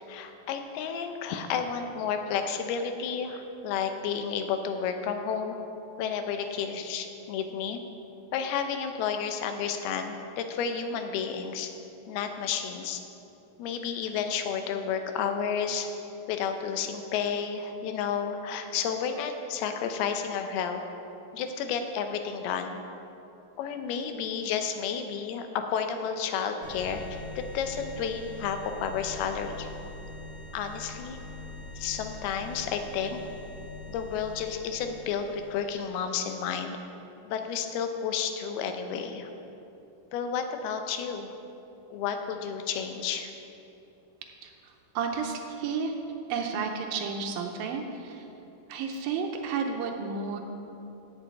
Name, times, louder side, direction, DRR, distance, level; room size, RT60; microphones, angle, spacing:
voice 1, 0.1-5.6 6.0-7.8 8.3-11.7 12.1-13.0 13.6-15.9 16.3-20.8 21.3-22.8 23.6-29.7 30.5-31.2 31.8-33.2 33.9-36.8 37.3-39.3 40.1-41.4 41.9-43.3, left 7 dB, 85° left, 6 dB, 2.7 m, -31 dB
sound 1, 26.6-36.0, left 2 dB, 30° left, 2.6 m, -43 dB
voice 2, 44.4-45.9 46.3-48.3 48.7-50.4, right 5 dB, 80° right, 3 dB, 2.4 m, -32 dB
8.2 x 7.3 x 8.3 m, 2.9 s
omnidirectional pair, 4.5 m